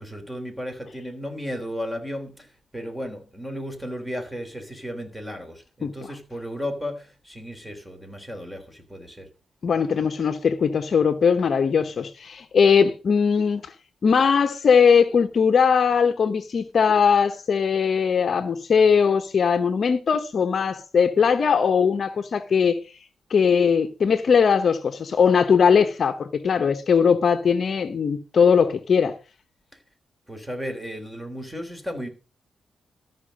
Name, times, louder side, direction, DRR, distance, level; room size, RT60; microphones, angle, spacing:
voice 1, 0.0-9.3 29.7-29.8 30.3-32.1, equal, 5° right, 3.4 m, -34 dB
voice 2, 9.6-13.7 14.0-22.8 23.3-29.1, left 6 dB, 50° left, 1.0 m, -20 dB
13.5 x 5.9 x 6.4 m
cardioid pair, 105°, 0 cm